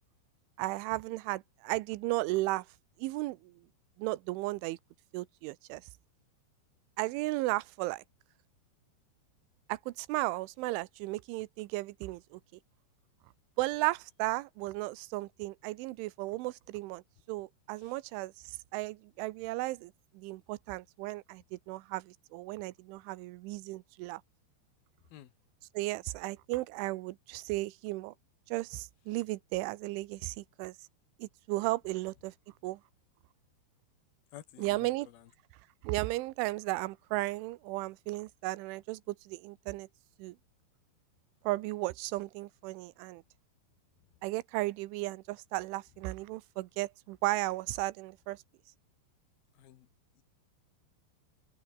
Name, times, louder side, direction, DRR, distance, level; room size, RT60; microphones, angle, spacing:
voice 1, 0.6-2.7 3.0-3.5 4.0-4.8 5.1-5.8 7.0-8.0 9.7-12.4 13.6-24.2 25.7-28.1 28.5-30.8 31.2-32.3 32.6-32.8 34.6-35.1 35.8-39.9 40.2-40.4 41.4-43.2 44.2-48.4, right 19 dB, 85° right, 3.3 m, -35 dB
voice 2, 34.3-35.3 49.6-49.9 50.2-50.3, left 12 dB, 65° left, 2.9 m, -52 dB
open air
omnidirectional pair, 5.4 m